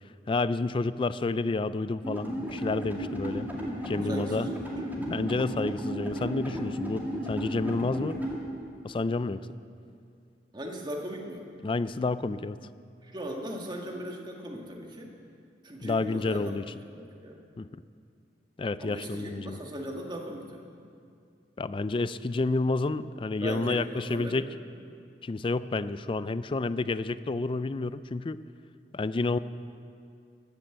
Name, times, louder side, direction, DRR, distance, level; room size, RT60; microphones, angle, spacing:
voice 1, 0.3-3.5 3.9-4.5 5.0-8.2 8.8-9.5 11.6-12.6 15.8-16.7 17.6-17.7 18.6-19.6 21.6-24.5 25.2-28.4 28.9-29.4, left 3 dB, 30° left, 15 dB, 0.4 m, -30 dB
sound 1, 2.0-8.4, equal, 10° right, 2.4 m, -34 dB
voice 2, 4.0-4.9 10.5-11.5 13.0-15.1 15.6-16.5 16.9-17.4 18.8-20.6 23.4-24.5, equal, 25° right, 1 dB, 1.9 m, -38 dB
14.5 x 11.5 x 7.9 m, 2.4 s
head